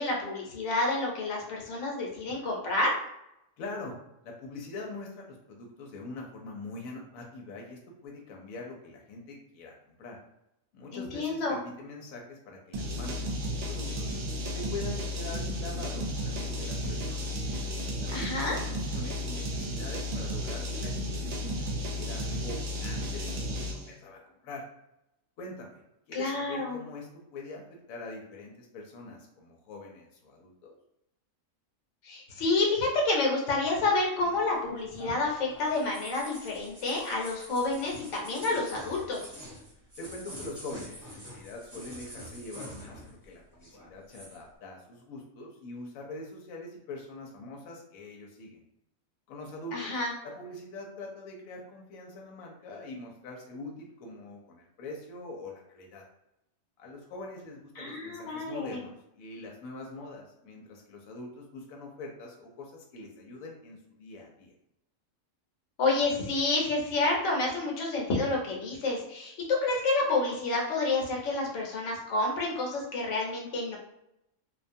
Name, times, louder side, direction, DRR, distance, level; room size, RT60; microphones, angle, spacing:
voice 1, 0.0-2.9 10.9-11.6 18.1-18.6 26.1-26.8 32.0-39.2 49.7-50.1 57.8-58.8 65.8-73.8, left 3 dB, 65° left, -2 dB, 1.0 m, -29 dB
voice 2, 3.6-4.0 4.2-10.2 10.7-13.4 13.6-14.1 14.5-17.3 18.0-21.7 21.9-23.3 23.7-24.6 25.4-25.8 26.1-30.8 40.0-48.6 49.3-50.0 50.2-56.0 56.8-64.5, left 2 dB, 90° left, 0 dB, 1.0 m, -43 dB
sound 1, 12.7-23.9, equal, 65° right, 0.8 m, -33 dB
sound 2, 34.2-43.3 43.5-44.4, equal, 15° right, 0.8 m, -46 dB
2.4 x 2.2 x 2.5 m, 0.85 s
omnidirectional pair, 1.4 m